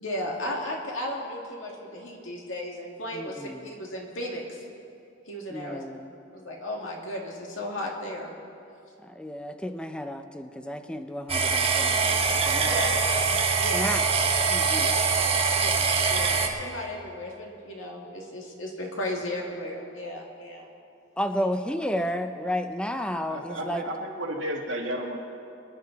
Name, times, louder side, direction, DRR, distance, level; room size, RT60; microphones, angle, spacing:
voice 1, 0.0-4.4 5.3-5.8 6.3-8.3 12.6-13.0 13.6-13.9 14.7-15.0 15.6-20.7, left 1 dB, 90° left, -1 dB, 2.4 m, -35 dB
voice 2, 3.1-3.7 5.5-6.2 9.0-12.8 13.7-14.1 14.5-15.0 21.2-23.8, equal, 5° left, 8 dB, 0.6 m, -32 dB
sound 1, 11.3-16.5, right 5 dB, 30° right, 1.1 m, -23 dB
voice 3, 23.2-25.2, right 1 dB, 70° right, 0 dB, 1.9 m, -33 dB
24.0 x 10.0 x 4.1 m, 2.6 s
head